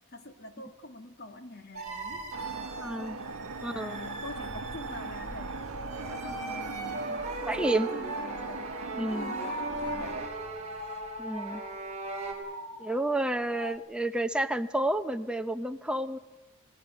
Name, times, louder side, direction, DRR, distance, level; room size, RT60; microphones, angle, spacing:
voice 1, 0.1-2.3 3.6-5.6 6.1-8.7 9.0-10.2, left 2 dB, 50° left, 6 dB, 2.1 m, -45 dB
sound 1, 1.7-4.6 4.9-7.4 8.9-13.8, left 1 dB, 25° left, 2.2 m, -44 dB
sound 2, 1.7-12.3, right 3 dB, 35° right, 4.0 m, -39 dB
sound 3, 2.3-10.3, right 3 dB, 75° right, 1.0 m, -39 dB
voice 2, 2.8-3.2 3.6-4.0 7.5-7.9 8.9-9.3 11.2-11.6 12.8-16.2, right 1 dB, 5° right, 8 dB, 0.8 m, -30 dB
28.0 x 18.5 x 6.3 m, 1.2 s
head